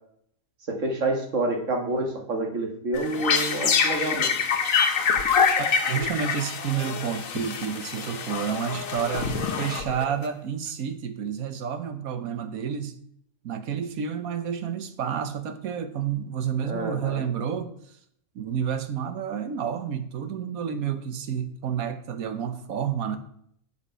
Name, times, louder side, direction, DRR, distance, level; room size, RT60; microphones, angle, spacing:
voice 1, 0.7-4.3 16.7-17.2, right 2 dB, 60° right, 3 dB, 1.9 m, -28 dB
sound 1, 2.9-10.2, left 6 dB, 70° left, 1.4 m, -25 dB
voice 2, 5.9-13.0 13.4-18.0 18.3-23.2, right 8 dB, 80° right, 10 dB, 1.4 m, -30 dB
7.4 x 7.0 x 5.6 m, 0.67 s
omnidirectional pair, 1.5 m